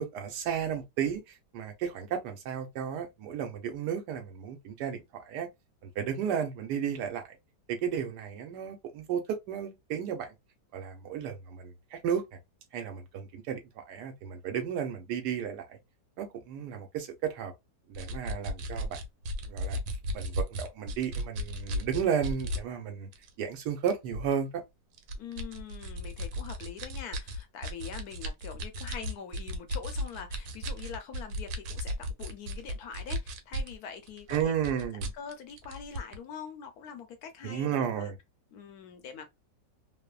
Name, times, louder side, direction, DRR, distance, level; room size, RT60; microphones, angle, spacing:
voice 1, 0.0-5.5 5.8-7.4 7.7-10.3 10.7-12.3 12.7-15.8 16.2-17.5 17.9-19.0 19.5-19.8 20.1-23.1 23.4-24.6 34.3-35.1 37.4-38.2, right 8 dB, 70° right, 1.2 m, -33 dB
sound 1, 18.0-22.6 23.1-23.3 23.9-24.3 25.0-33.8 34.1-36.2, equal, 90° right, 1.3 m, -35 dB
voice 2, 25.2-34.6 35.1-38.1 38.5-39.3, left 7 dB, 70° left, 0.9 m, -44 dB
3.0 x 2.0 x 2.3 m
omnidirectional pair, 1.9 m